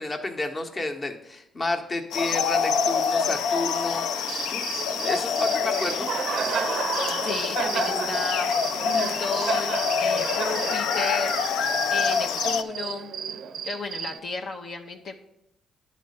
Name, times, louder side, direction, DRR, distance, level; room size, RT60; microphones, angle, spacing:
voice 1, 0.0-4.7 4.9-6.1, left 2 dB, 30° left, 4 dB, 1.0 m, -31 dB
sound 1, 2.1-12.6, left 6 dB, 85° left, 0.4 m, -26 dB
Cricket, 4.2-14.2, right 7 dB, 65° right, 0.4 m, -32 dB
voice 2, 6.8-11.3 11.9-13.1 13.6-15.2, left 3 dB, 60° left, 1 dB, 0.7 m, -34 dB
10.0 x 4.3 x 5.4 m, 0.84 s
cardioid pair, 90°, 0 cm